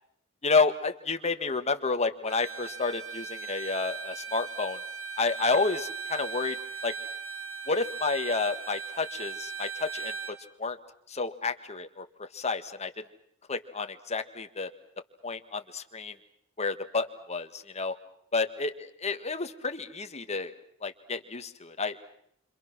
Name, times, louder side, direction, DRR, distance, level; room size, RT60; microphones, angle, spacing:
voice 1, 0.4-4.8 5.2-6.6 6.8-6.9 7.7-10.8 11.1-13.0 13.5-14.7 15.2-16.1 16.6-17.9 18.3-18.7 19.0-20.5 20.8-22.0, left 4 dB, 30° left, 8 dB, 1.7 m, -30 dB
Bowed string instrument, 2.3-10.4, right 6 dB, 70° right, 3.6 m, -38 dB
29.5 x 26.0 x 6.2 m, 0.70 s
head